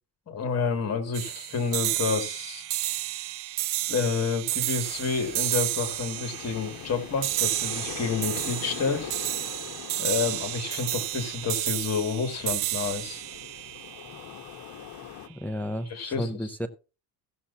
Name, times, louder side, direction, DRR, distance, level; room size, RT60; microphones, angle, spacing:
voice 1, 0.3-2.7 3.9-9.1 10.0-13.2 15.9-16.7, left 5 dB, 35° left, 2.5 m, -29 dB
sound 1, 1.1-14.6, right 16 dB, 70° right, 0.5 m, -31 dB
sound 2, 4.8-15.3, left 9 dB, 50° left, 1.2 m, -43 dB
voice 2, 15.3-16.7, equal, 5° left, 0.5 m, -32 dB
16.0 x 7.1 x 2.8 m
cardioid pair, 135°, 44 cm